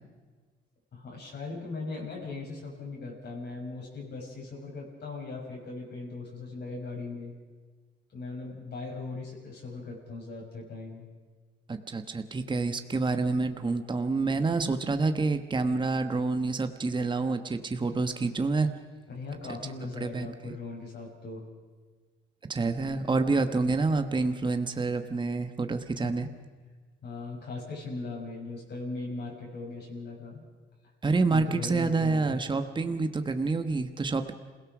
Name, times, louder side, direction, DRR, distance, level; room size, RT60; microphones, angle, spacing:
voice 1, 0.9-7.3 8.1-11.0 19.1-21.5 26.0-26.3 27.0-30.4 31.3-32.5, left 3 dB, 60° left, -2 dB, 6.5 m, -39 dB
voice 2, 11.7-18.7 20.0-20.4 22.5-26.3 31.0-34.3, right 3 dB, 25° right, 8 dB, 1.2 m, -28 dB
27.5 x 17.5 x 6.2 m, 1.4 s
cardioid pair, 90°, 20 cm